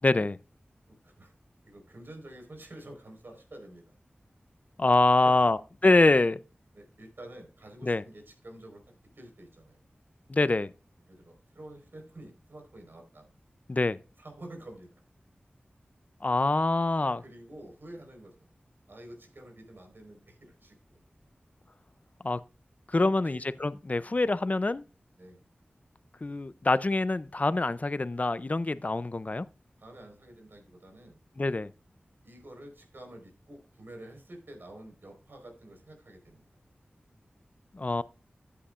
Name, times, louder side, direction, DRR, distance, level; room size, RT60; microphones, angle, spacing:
voice 1, 0.0-0.4 4.8-6.4 7.8-8.0 10.3-10.7 13.7-14.0 16.2-17.2 22.2-22.4 22.9-24.8 26.2-29.5 31.4-31.7 37.7-38.0, left 2 dB, 40° left, 0.5 m, -25 dB
voice 2, 0.9-1.3 1.6-4.0 5.1-5.4 6.7-9.8 11.1-13.3 14.2-15.0 17.2-18.5 18.9-21.0 23.0-23.5 25.2-25.4 29.8-31.2 32.2-36.4, right 1 dB, 70° right, 4.5 m, -49 dB
13.5 x 8.5 x 2.5 m
wide cardioid pair, 50°, 4 cm